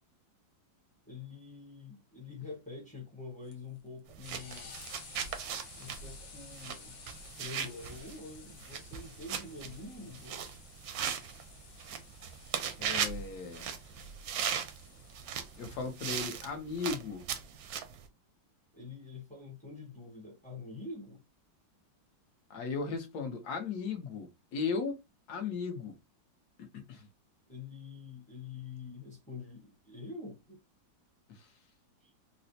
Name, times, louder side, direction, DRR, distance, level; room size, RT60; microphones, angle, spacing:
voice 1, 1.0-4.8 5.8-7.0 7.4-10.4 18.7-21.2 27.5-30.6 32.0-32.1, left 4 dB, 5° left, 0.6 m, -46 dB
sound 1, 3.5-16.5, left 5 dB, 90° left, 1.7 m, -54 dB
sound 2, 4.1-18.1, right 7 dB, 70° right, 0.9 m, -38 dB
voice 2, 12.8-13.7 15.6-17.3 22.5-25.0 25.3-26.0 26.6-27.1 31.3-31.5, left 5 dB, 65° left, 1.2 m, -36 dB
4.0 x 2.1 x 2.7 m
omnidirectional pair, 2.0 m